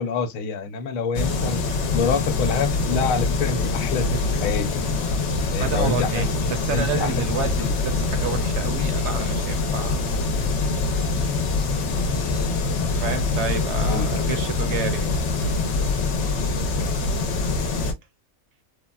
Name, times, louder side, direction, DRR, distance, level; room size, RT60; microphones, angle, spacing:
voice 1, 0.0-1.6 1.9-4.8 5.5-6.3 6.7-7.2 7.6-7.7 13.9-14.1, left 5 dB, 90° left, 1.0 m, -26 dB
sound 1, 1.1-17.9, left 3 dB, 65° left, 0.9 m, -24 dB
voice 2, 5.6-10.2 12.9-15.1, right 7 dB, 65° right, 0.8 m, -30 dB
3.3 x 2.1 x 2.2 m
omnidirectional pair, 1.4 m